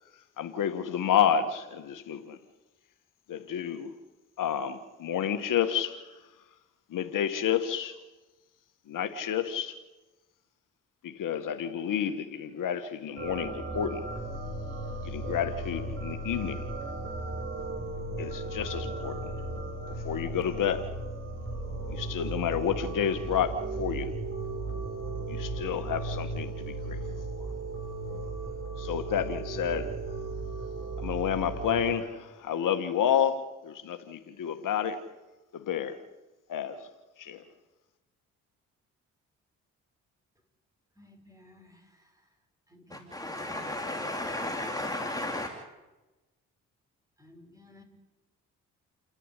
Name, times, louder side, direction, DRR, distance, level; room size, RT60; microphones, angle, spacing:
voice 1, 0.4-2.4 3.3-3.9 4.4-6.1 6.9-8.0 8.9-9.8 11.0-14.0 15.0-16.7 18.2-19.2 20.0-20.9 21.9-24.1 25.3-27.0 27.4-27.5 28.8-29.9 31.0-35.0 35.5-36.0 36.5-36.9 37.2-37.4, left 8 dB, 70° left, 1.6 m, -30 dB
sound 1, 13.2-31.9, right 2 dB, 40° right, 6.2 m, -36 dB
voice 2, 41.0-41.8 42.7-43.7 47.2-47.8, left 1 dB, 10° right, 6.3 m, -55 dB
voice 3, 42.9-45.5, left 1 dB, 10° left, 3.0 m, -34 dB
29.5 x 11.0 x 10.0 m
supercardioid pair, 60°, 33 cm